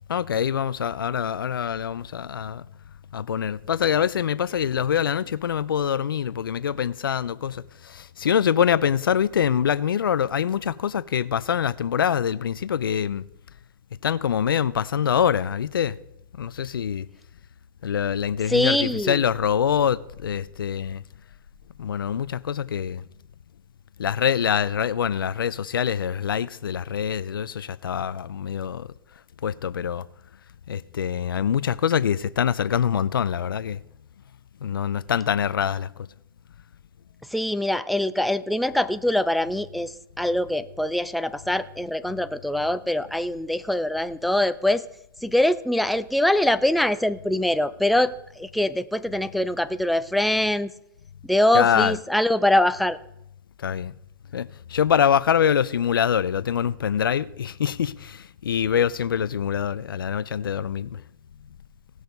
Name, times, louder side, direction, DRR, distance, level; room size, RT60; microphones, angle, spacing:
voice 1, 0.1-2.6 3.1-13.2 14.0-16.0 16.4-17.1 17.8-21.0 21.8-23.0 24.0-28.9 29.4-30.0 30.7-33.8 34.6-35.9 51.5-52.0 53.6-53.9 54.3-61.0, left 8 dB, 85° left, 0.5 m, -24 dB
voice 2, 18.5-19.2 37.3-44.8 45.2-50.7 51.2-53.0, left 1 dB, ahead, 0.4 m, -23 dB
17.5 x 6.4 x 5.2 m
hypercardioid pair, 120°, 11 cm